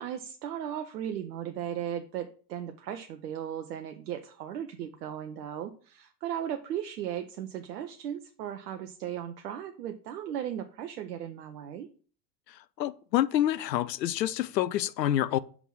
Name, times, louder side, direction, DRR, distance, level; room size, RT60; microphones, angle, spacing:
voice 1, 0.0-11.9, right 10 dB, 70° right, 0.7 m, -36 dB
voice 2, 12.8-15.4, left 12 dB, 80° left, 0.6 m, -27 dB
5.9 x 3.5 x 5.8 m
figure-of-eight pair, 85°, 50 cm